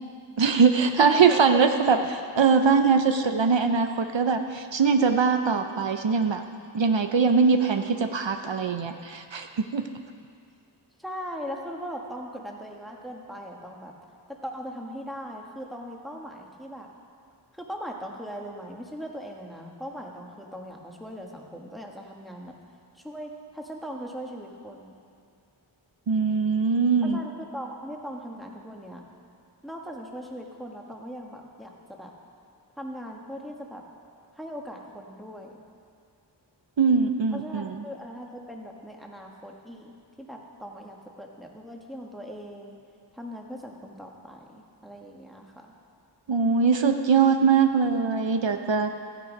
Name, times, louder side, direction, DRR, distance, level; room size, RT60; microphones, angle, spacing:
voice 1, 0.4-2.0 2.4-6.4 6.7-9.8 26.1-27.2 36.8-37.7 46.3-48.9, right 5 dB, 70° right, 6 dB, 0.7 m, -22 dB
voice 2, 1.0-1.7 11.0-13.9 14.3-16.9 17.5-22.5 22.9-25.0 27.0-29.0 29.6-32.1 32.8-33.8 34.4-35.6 37.3-42.8 43.1-45.7, equal, ahead, 0 dB, 1.5 m, -39 dB
14.0 x 9.3 x 5.2 m, 2.3 s
wide cardioid pair, 40°, 46 cm